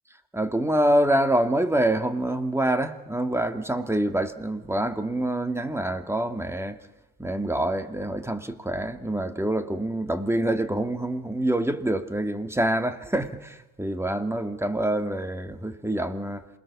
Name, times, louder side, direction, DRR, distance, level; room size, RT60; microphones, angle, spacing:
voice 1, 0.3-6.9 7.2-16.5, right 1 dB, 10° right, 2.0 m, -26 dB
27.0 x 20.5 x 7.1 m
cardioid pair, 90°, 30 cm